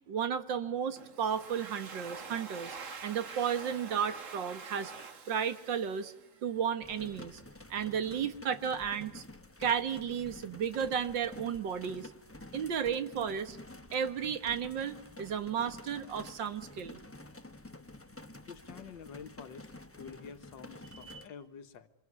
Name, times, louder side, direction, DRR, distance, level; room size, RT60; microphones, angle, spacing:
voice 1, 0.1-2.8 3.0-4.9 5.3-6.1 6.4-7.4 7.7-9.2 9.6-12.1 12.5-13.6 13.9-17.0 21.0-21.2, right 8 dB, 85° right, 12 dB, 2.1 m, -33 dB
Domestic sounds home sounds, 1.0-6.6, right 5 dB, 45° right, 1.8 m, -46 dB
sound 1, 6.8-21.3, left 2 dB, 10° left, 0.8 m, -50 dB
voice 2, 18.4-21.9, left 6 dB, 85° left, 10 dB, 2.0 m, -49 dB
26.5 x 22.5 x 9.7 m, 0.76 s
omnidirectional pair, 1.9 m